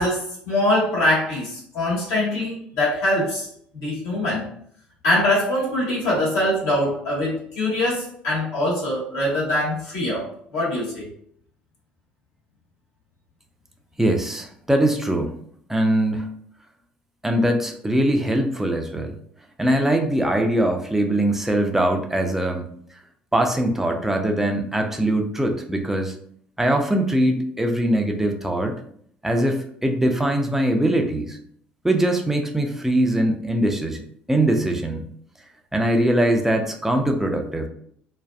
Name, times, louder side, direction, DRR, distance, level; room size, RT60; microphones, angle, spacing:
voice 1, 0.0-3.5 3.7-4.5 5.0-11.1, left 1 dB, 65° left, -6 dB, 1.3 m, -23 dB
voice 2, 14.0-15.4 15.7-16.3 17.2-19.2 19.6-22.7 23.3-26.1 26.6-28.8 29.2-31.4 31.8-34.0 34.3-35.0 35.7-37.7, right 1 dB, 5° right, 4 dB, 0.4 m, -22 dB
2.5 x 2.2 x 2.2 m, 0.63 s
figure-of-eight pair, 55°, 5 cm